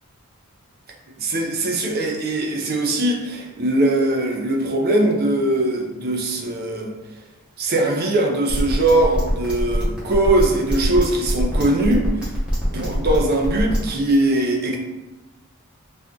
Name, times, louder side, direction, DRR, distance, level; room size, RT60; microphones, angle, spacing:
voice 1, 1.2-6.9 7.6-12.3 12.7-14.8, right 1 dB, 45° right, 1 dB, 0.5 m, -21 dB
sound 1, 8.5-13.9, equal, 5° right, 0.8 m, -24 dB
2.6 x 2.3 x 3.6 m, 1.0 s
head